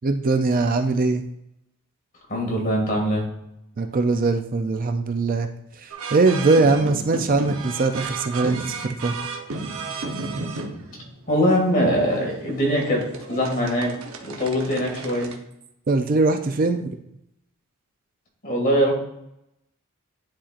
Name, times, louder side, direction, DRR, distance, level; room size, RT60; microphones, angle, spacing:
voice 1, 0.0-1.2 3.8-5.5 5.8-9.2 15.9-16.9, right 3 dB, 40° right, 7 dB, 0.4 m, -21 dB
voice 2, 2.3-3.2 10.9-11.0 11.3-13.0 13.3-13.9 14.2-15.3 18.4-18.9, equal, 40° left, -1 dB, 2.2 m, -22 dB
sound 1, 5.9-15.4, right 3 dB, 80° right, 0.9 m, -33 dB
9.9 x 4.3 x 2.5 m, 0.81 s
head